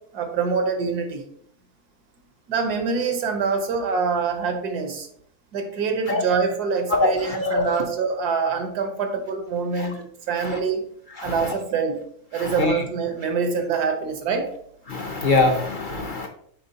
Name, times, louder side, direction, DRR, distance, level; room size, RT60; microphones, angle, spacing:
voice 1, 0.1-1.2 2.5-5.1 5.5-10.9 11.2-12.0 12.3-14.5, right 5 dB, 85° right, 6 dB, 1.5 m, -25 dB
voice 2, 6.9-7.7 9.8-9.9 10.4-10.6 11.2-11.4 12.4-12.8 14.9-16.3, left 2 dB, 65° left, 3 dB, 0.5 m, -23 dB
9.1 x 3.7 x 2.8 m, 0.66 s
omnidirectional pair, 1.6 m